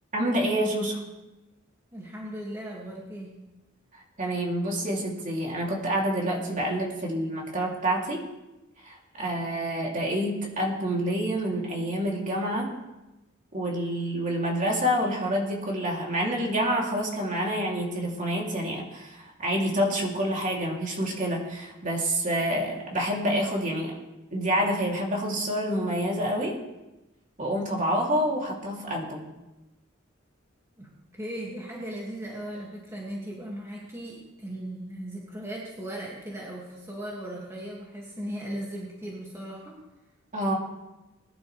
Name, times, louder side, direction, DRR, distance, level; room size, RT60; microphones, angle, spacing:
voice 1, 0.1-1.0 4.2-8.2 8.8-12.7 13.5-23.9 24.3-26.6 27.4-29.2 40.3-40.6, equal, 40° right, -2 dB, 3.1 m, -27 dB
voice 2, 1.9-3.3 30.8-39.8, right 1 dB, 15° right, -4 dB, 2.3 m, -37 dB
21.0 x 11.5 x 3.4 m, 1.0 s
head